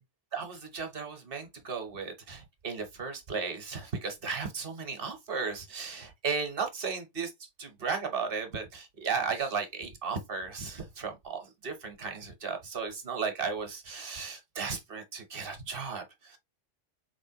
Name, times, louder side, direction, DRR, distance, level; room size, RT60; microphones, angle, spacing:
voice 1, 0.3-16.4, right 5 dB, 55° right, 1.1 m, -35 dB
4.1 x 3.3 x 2.8 m
omnidirectional pair, 1.2 m